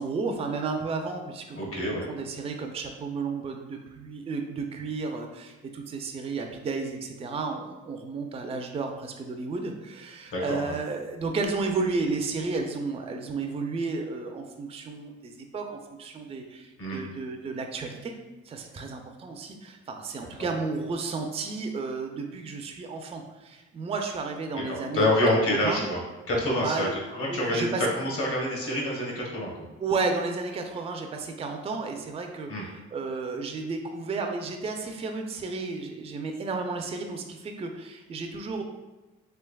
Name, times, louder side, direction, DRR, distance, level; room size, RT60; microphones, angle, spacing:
voice 1, 0.0-18.1 18.5-25.9 26.6-26.9 27.3-27.9 29.8-38.6, right 4 dB, 20° right, 4 dB, 0.3 m, -32 dB
voice 2, 1.5-2.1 10.3-10.8 16.8-17.0 20.4-20.5 24.7-26.0 26.3-29.5 32.5-32.6, left 1 dB, 50° left, -2 dB, 1.1 m, -27 dB
3.4 x 3.0 x 2.2 m, 1.1 s
cardioid pair, 90°, 30 cm